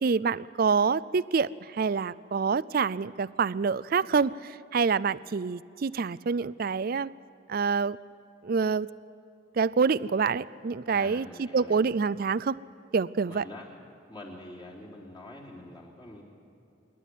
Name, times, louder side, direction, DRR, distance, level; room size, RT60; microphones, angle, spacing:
voice 1, 0.0-7.1 7.5-8.0 8.4-8.9 9.6-12.6 12.9-13.4, right 5 dB, 50° right, 20 dB, 0.4 m, -27 dB
voice 2, 10.9-11.8 13.3-13.7 14.1-16.2, left 1 dB, 25° left, -3 dB, 3.6 m, -45 dB
27.0 x 11.5 x 9.4 m, 2.8 s
head